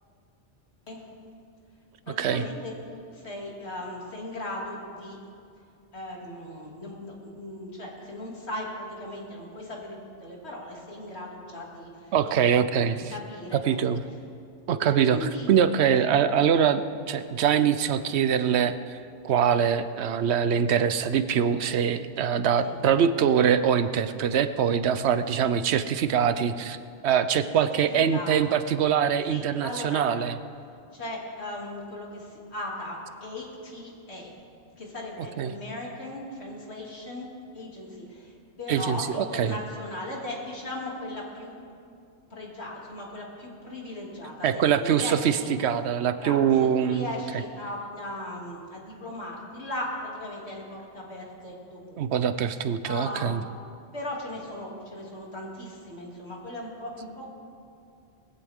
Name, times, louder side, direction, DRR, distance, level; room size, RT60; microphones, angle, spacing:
voice 1, 2.0-5.2 5.9-13.8 15.1-15.5 22.6-22.8 25.0-25.1 27.4-28.6 29.3-30.0 30.9-34.3 34.8-37.3 37.5-41.5 42.3-44.5 44.7-45.5 46.2-52.3 52.8-53.3 53.9-57.3, left 1 dB, 85° left, -3 dB, 3.0 m, -38 dB
voice 2, 12.1-13.1 13.7-14.0 14.7-19.0 19.2-26.8 27.0-30.3 35.4-35.5 38.7-39.5 44.4-47.1 52.0-53.4, right 8 dB, 85° right, 12 dB, 0.9 m, -23 dB
20.5 x 15.5 x 3.6 m, 2.4 s
omnidirectional pair, 1.1 m